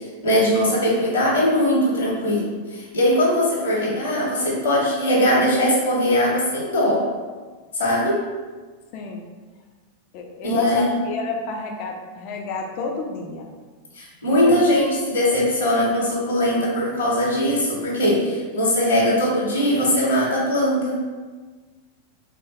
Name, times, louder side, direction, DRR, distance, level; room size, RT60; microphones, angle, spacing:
voice 1, 0.0-7.0 7.7-8.2 10.4-10.9 13.9-21.0, left 1 dB, 60° left, -4 dB, 0.9 m, -20 dB
voice 2, 8.9-9.2 10.1-13.5 14.4-14.7, left 4 dB, 45° left, 1 dB, 0.4 m, -30 dB
3.4 x 2.1 x 4.1 m, 1.4 s
figure-of-eight pair, 90°, 0 cm